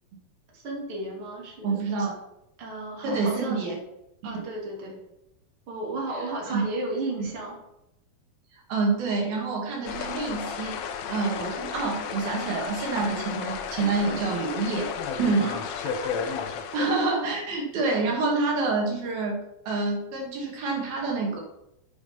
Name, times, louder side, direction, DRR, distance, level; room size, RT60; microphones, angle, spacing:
voice 1, 0.5-1.8 2.6-3.7 4.2-5.0 5.7-7.5 15.4-16.3 16.8-16.9, right 2 dB, 40° right, -2 dB, 3.3 m, -34 dB
voice 2, 1.6-2.1 3.0-3.8 4.2-4.4 6.5-6.6 7.2-7.3 8.7-14.9 15.2-15.5 16.7-21.4, right 3 dB, 85° right, -1 dB, 4.0 m, -27 dB
sound 1, 9.8-17.2, left 7 dB, 80° left, 1.5 m, -33 dB
10.5 x 7.9 x 5.3 m, 0.87 s
omnidirectional pair, 4.2 m